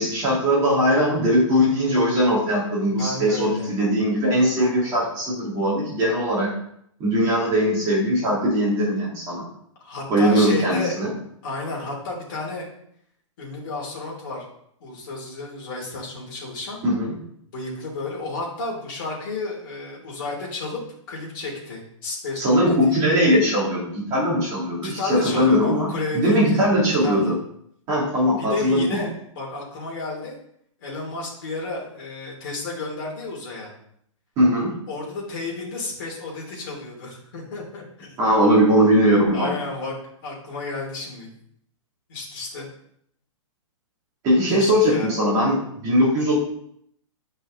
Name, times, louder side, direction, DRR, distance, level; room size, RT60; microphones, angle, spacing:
voice 1, 0.0-6.6 7.0-9.5 10.1-11.1 16.8-17.1 22.4-27.4 27.9-29.0 34.4-34.8 38.2-39.5 44.2-46.4, equal, 20° right, -5 dB, 2.4 m, -20 dB
voice 2, 2.9-3.7 9.8-11.1 11.4-12.7 13.4-14.5 14.8-16.8 17.5-20.8 21.1-22.6 22.9-23.0 24.8-26.6 27.0-27.4 28.4-29.1 29.3-30.3 30.8-33.7 34.9-38.2 39.3-39.9 40.2-41.3 42.1-42.7 44.5-45.1, left 3 dB, 40° left, -3 dB, 3.0 m, -32 dB
9.4 x 5.5 x 3.8 m, 0.69 s
hypercardioid pair, 175°, 17 cm